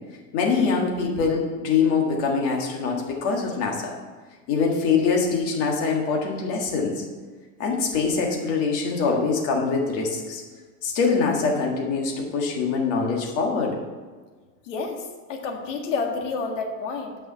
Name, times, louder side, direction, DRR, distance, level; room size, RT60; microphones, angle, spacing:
voice 1, 0.3-3.9 4.5-7.0 7.6-10.4 10.8-13.8, left 5 dB, 30° left, 0 dB, 1.8 m, -24 dB
voice 2, 14.7-17.2, left 4 dB, 55° left, 2 dB, 1.8 m, -29 dB
9.0 x 5.5 x 6.7 m, 1.4 s
supercardioid pair, 170°, 44 cm